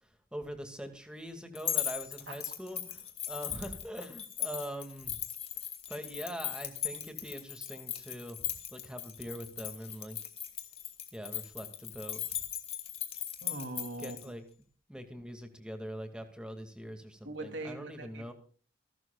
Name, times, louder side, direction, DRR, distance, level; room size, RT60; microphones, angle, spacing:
voice 1, 0.0-5.2 5.9-10.2 11.1-12.4 14.0-14.4 14.9-18.3, equal, 5° right, 6 dB, 2.3 m, -43 dB
sound 1, 1.5-14.2, left 10 dB, 30° left, 2.7 m, -38 dB
voice 2, 13.4-14.3 17.2-18.3, right 2 dB, 70° right, 6 dB, 3.2 m, -41 dB
28.0 x 12.5 x 2.5 m, 0.41 s
head